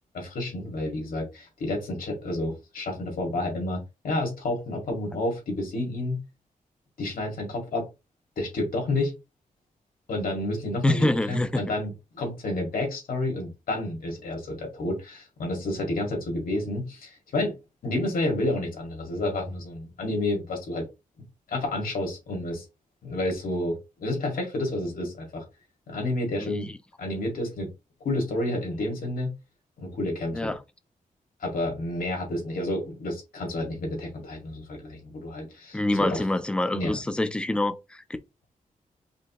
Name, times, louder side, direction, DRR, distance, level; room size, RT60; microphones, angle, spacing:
voice 1, 0.1-6.2 7.0-7.9 8.4-9.1 10.1-17.5 17.8-20.8 21.5-22.6 23.0-25.4 25.9-26.7 27.0-27.7 28.0-29.3 29.8-30.5 31.4-36.2 36.7-37.0, left 2 dB, 85° left, 2.0 m, -30 dB
voice 2, 10.8-11.6 26.4-26.7 30.3-30.6 35.7-38.0, left 1 dB, 5° left, 0.4 m, -26 dB
5.1 x 2.7 x 2.9 m
wide cardioid pair, 175°, 14 cm